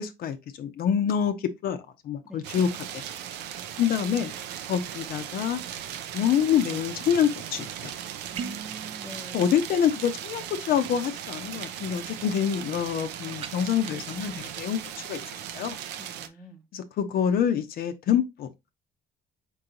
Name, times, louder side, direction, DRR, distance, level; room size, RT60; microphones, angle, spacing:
voice 1, 0.0-3.0 3.8-4.3 4.7-5.6 6.1-7.9 9.3-14.8 15.0-15.2 15.5-15.8 16.7-18.7, left 8 dB, 60° left, 0.6 m, -26 dB
voice 2, 2.2-2.6 8.3-9.5 16.0-16.7, equal, 5° right, 0.8 m, -44 dB
sound 1, 2.4-16.3, right 10 dB, 85° right, 0.5 m, -38 dB
sound 2, 8.3-8.7 13.3-13.6, right 7 dB, 35° right, 0.4 m, -36 dB
4.5 x 3.9 x 2.8 m
cardioid pair, 110°, 17 cm